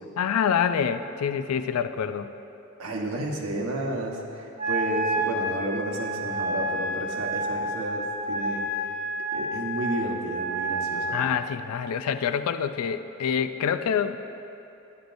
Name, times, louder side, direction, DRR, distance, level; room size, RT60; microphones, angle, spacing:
voice 1, 0.2-2.3 11.1-14.2, left 7 dB, 70° left, 11 dB, 0.3 m, -26 dB
voice 2, 2.8-8.8 9.3-11.2, right 1 dB, 70° right, -1 dB, 1.1 m, -32 dB
Wind instrument woodwind instrument, 4.6-11.2, right 1 dB, 35° right, 1.4 m, -29 dB
10.5 x 9.5 x 2.6 m, 3.0 s
head